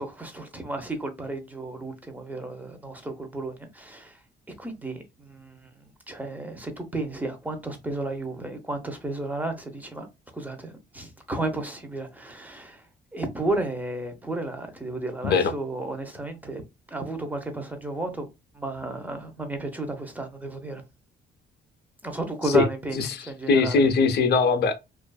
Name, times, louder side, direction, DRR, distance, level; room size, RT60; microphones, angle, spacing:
voice 1, 0.0-4.2 4.6-10.1 10.3-12.9 13.1-16.6 16.9-18.3 18.5-20.8 22.0-23.8, right 2 dB, 10° right, 0.7 m, -33 dB
voice 2, 23.0-24.7, left 4 dB, 55° left, 0.5 m, -21 dB
2.5 x 2.3 x 2.2 m
cardioid pair, 90°, 20 cm